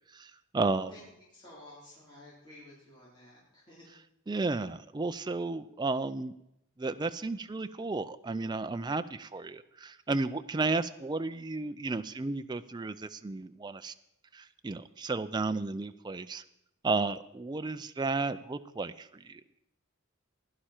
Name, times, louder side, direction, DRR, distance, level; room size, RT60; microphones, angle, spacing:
voice 1, 0.1-0.9 4.3-6.3 6.8-13.9 14.3-16.4 16.8-19.6, right 3 dB, 20° right, 10 dB, 0.4 m, -33 dB
voice 2, 0.7-1.1 1.3-3.9, left 1 dB, 20° left, -7 dB, 3.8 m, -53 dB
16.0 x 11.5 x 4.4 m, 0.81 s
head